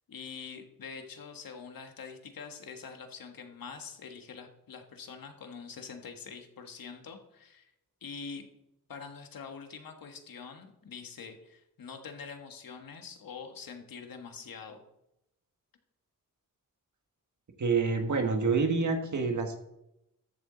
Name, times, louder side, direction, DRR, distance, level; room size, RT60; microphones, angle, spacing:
voice 1, 0.1-7.7 8.0-8.5 8.9-14.8, left 5 dB, 85° left, 5 dB, 1.5 m, -45 dB
voice 2, 17.6-19.6, right 4 dB, 60° right, 4 dB, 1.6 m, -27 dB
13.5 x 7.2 x 3.9 m, 0.84 s
cardioid pair, 75°, 34 cm